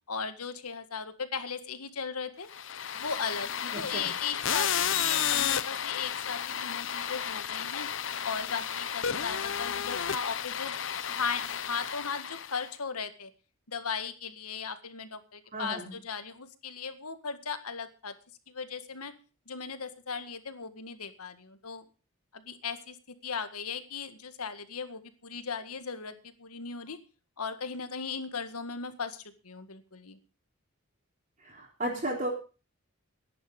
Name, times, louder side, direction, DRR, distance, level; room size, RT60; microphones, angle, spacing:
voice 1, 0.1-2.5 2.9-7.9 8.2-10.8 11.1-13.3 13.7-18.1 18.5-19.1 19.5-21.8 22.3-23.0 23.2-27.0 27.4-30.2, left 5 dB, 85° left, 10 dB, 1.8 m, -37 dB
sound 1, 2.5-12.7, left 8 dB, 55° left, 0.8 m, -32 dB
voice 2, 3.7-4.1 15.5-15.9 31.4-32.3, right 1 dB, 35° right, 0 dB, 3.6 m, -34 dB
14.5 x 10.5 x 5.4 m, 0.35 s
head